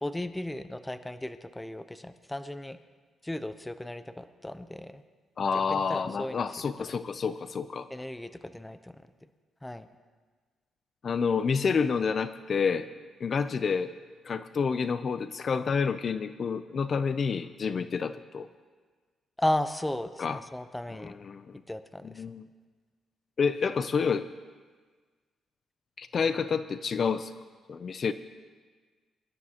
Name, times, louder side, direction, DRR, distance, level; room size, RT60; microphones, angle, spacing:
voice 1, 0.0-2.8 3.2-5.0 5.7-6.5 6.8-6.9 7.9-9.0 9.6-9.9 19.4-21.1 21.7-22.2, left 1 dB, 10° left, 11 dB, 0.7 m, -35 dB
voice 2, 5.4-7.9 11.0-12.9 13.2-13.9 14.2-18.5 20.2-20.4 21.0-21.6 22.0-22.5 23.4-24.3 26.0-27.3 27.7-28.1, left 5 dB, 45° left, 12 dB, 0.5 m, -29 dB
24.0 x 12.0 x 2.9 m, 1.5 s
cardioid pair, 95°, 0 cm